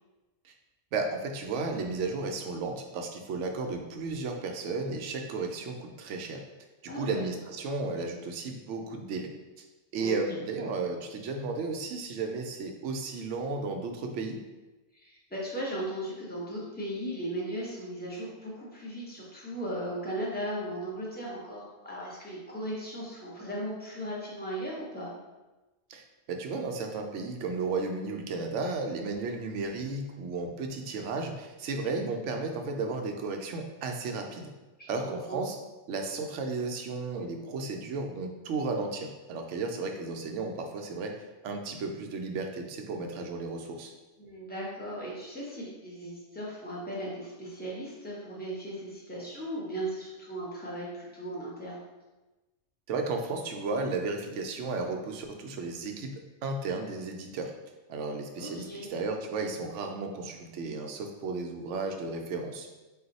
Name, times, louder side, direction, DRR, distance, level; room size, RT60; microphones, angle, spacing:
voice 1, 0.9-6.4 6.8-9.6 9.9-14.4 25.9-34.5 34.9-35.6 35.9-41.2 41.4-43.9 52.9-57.5 57.9-62.7, right 3 dB, 75° right, 3 dB, 0.9 m, -34 dB
voice 2, 6.9-7.2 10.0-10.4 14.9-25.1 34.8-35.4 44.2-51.9 58.4-58.9, right 1 dB, 10° left, -6 dB, 0.8 m, -37 dB
4.1 x 2.3 x 3.9 m, 1.1 s
omnidirectional pair, 1.3 m